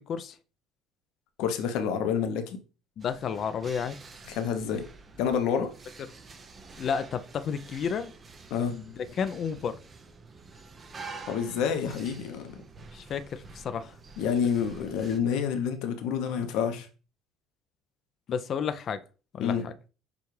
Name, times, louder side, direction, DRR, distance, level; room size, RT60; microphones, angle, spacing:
voice 1, 1.4-2.6 4.3-4.9 5.2-5.7 8.5-8.8 11.3-12.6 14.2-16.9 19.4-19.6, left 7 dB, 70° left, 0.8 m, -28 dB
voice 2, 3.0-4.0 6.8-8.1 8.6-9.8 12.9-14.3 18.3-19.0 19.3-19.7, left 7 dB, 40° left, 0.4 m, -32 dB
sound 1, 3.0-15.2, right 4 dB, 25° right, 0.6 m, -48 dB
6.9 x 2.4 x 3.2 m
cardioid pair, 130°, 0 cm